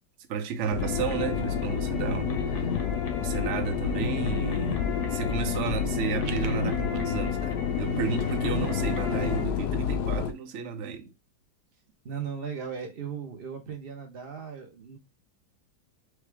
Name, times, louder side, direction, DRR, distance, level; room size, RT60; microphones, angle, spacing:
voice 1, 0.3-2.7 3.2-11.1, right 6 dB, 70° right, 0.7 m, -33 dB
sound 1, 0.7-10.3, left 8 dB, 75° left, 0.9 m, -29 dB
sound 2, 0.8-9.4, left 2 dB, 50° left, 1.0 m, -35 dB
sound 3, 5.1-7.0, right 8 dB, 90° right, 1.4 m, -45 dB
voice 2, 12.0-15.0, right 6 dB, 35° right, 1.1 m, -37 dB
4.9 x 2.8 x 3.3 m
omnidirectional pair, 2.1 m